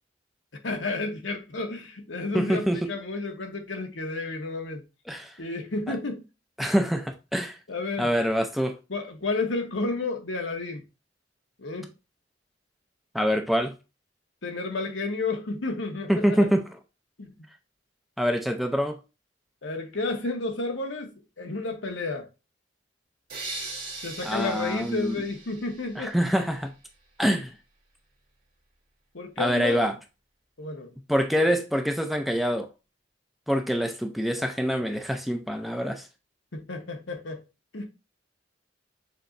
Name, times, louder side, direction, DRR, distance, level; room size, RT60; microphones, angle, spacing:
voice 1, 0.6-4.8 5.4-6.2 7.7-8.1 8.9-10.8 11.6-11.9 14.4-16.5 17.2-17.3 19.6-22.3 24.0-26.2 29.1-29.9 30.6-30.9 31.4-31.5 36.5-37.4 37.7-37.9, left 3 dB, 80° left, 1.0 m, -31 dB
voice 2, 2.3-2.9 5.1-5.3 6.6-7.6 8.0-8.8 13.1-13.7 16.1-16.6 18.2-19.0 24.2-25.2 26.0-26.7 27.2-27.5 29.4-29.9 31.1-32.7 33.5-36.1, equal, ahead, 0.4 m, -25 dB
sound 1, 23.3-26.3, right 2 dB, 50° right, 2.1 m, -39 dB
6.6 x 3.0 x 2.5 m
head